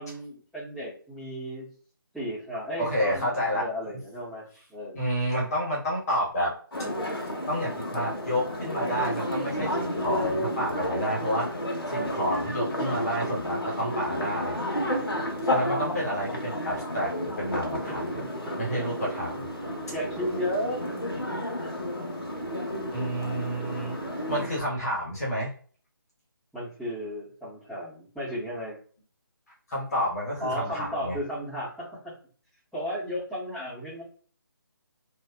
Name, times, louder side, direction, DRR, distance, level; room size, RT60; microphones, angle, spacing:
voice 1, 0.0-1.7 2.1-5.0 18.4-19.1 19.9-20.8 21.6-21.7 26.5-28.8 30.4-32.1 32.7-34.0, equal, ahead, -15 dB, 1.3 m, -34 dB
voice 2, 2.8-3.6 4.9-6.5 7.5-14.6 15.4-18.1 18.6-19.3 22.9-24.0 24.3-25.5 29.7-31.2, equal, 40° left, -4 dB, 1.4 m, -30 dB
sound 1, 6.7-24.5, left 1 dB, 90° left, 1.1 m, -31 dB
3.0 x 2.7 x 2.3 m, 0.43 s
figure-of-eight pair, 155°, 12 cm